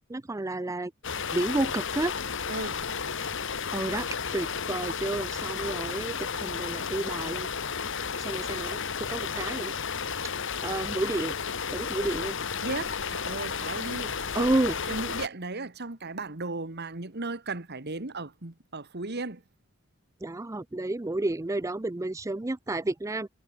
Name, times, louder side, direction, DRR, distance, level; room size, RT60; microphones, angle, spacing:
voice 1, 0.1-0.9 1.3-2.1 3.7-4.1 4.3-7.5 8.2-8.8 9.1-9.7 10.2-10.3 10.6-11.3 11.7-12.3 14.3-14.8 20.2-23.3, right 2 dB, 15° right, 0.5 m, -30 dB
sound 1, 1.0-15.3, left 6 dB, 65° left, 1.9 m, -33 dB
voice 2, 2.5-2.8 12.6-19.4, right 3 dB, 50° right, 1.9 m, -36 dB
head